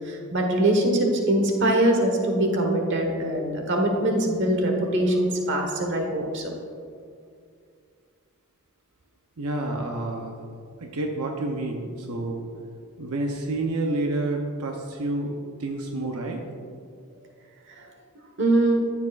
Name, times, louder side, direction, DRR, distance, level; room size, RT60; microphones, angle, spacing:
voice 1, 0.0-6.5 18.4-18.8, right 1 dB, 55° right, 2 dB, 1.2 m, -23 dB
voice 2, 9.4-10.4 10.8-12.4 13.0-16.4, right 2 dB, 85° right, 1 dB, 0.7 m, -29 dB
13.0 x 7.3 x 2.4 m, 2.3 s
head